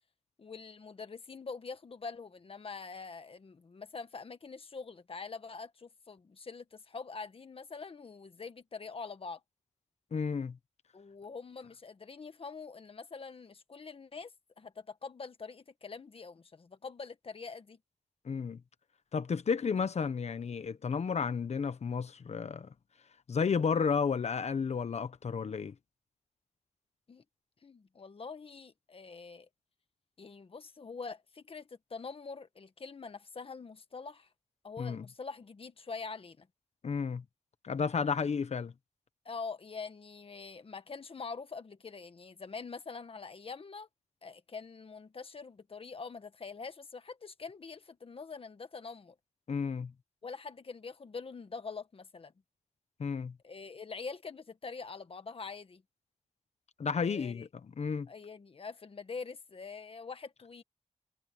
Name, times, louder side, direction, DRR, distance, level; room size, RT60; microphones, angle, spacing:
voice 1, 0.4-9.4 10.9-14.3 14.6-17.8 27.1-27.2 27.6-29.5 30.2-34.3 34.6-36.5 39.2-43.9 44.2-49.1 50.2-52.3 53.4-55.8 57.0-57.5 58.1-60.6, left 4 dB, 50° left, 1.5 m, -44 dB
voice 2, 10.1-10.6 18.2-18.6 19.1-22.7 23.3-25.7 34.8-35.0 36.8-37.2 37.6-38.7 49.5-49.9 53.0-53.4 56.8-58.1, left 5 dB, 65° left, 1.1 m, -32 dB
wide cardioid pair, 125°, 12 cm